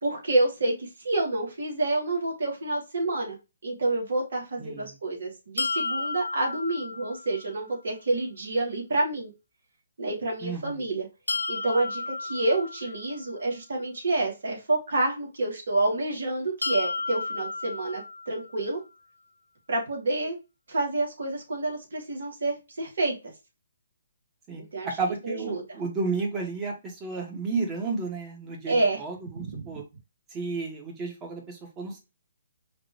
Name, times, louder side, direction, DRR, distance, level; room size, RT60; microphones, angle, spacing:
voice 1, 0.0-3.4 3.6-9.3 10.0-11.1 11.5-18.8 19.7-20.4 20.7-23.2 24.6-24.9 25.2-25.8 28.7-29.0 29.3-29.7, right 2 dB, 65° right, -1 dB, 2.4 m, -28 dB
voice 2, 4.6-4.9 10.4-10.8 24.5-24.6 25.0-29.8 30.3-32.0, right 4 dB, 20° right, 0 dB, 1.6 m, -32 dB
sound 1, 5.6-7.5 11.3-13.3 16.6-18.6, left 3 dB, 85° left, 0.4 m, -33 dB
5.1 x 3.1 x 2.9 m, 0.26 s
figure-of-eight pair, 135°, 0 cm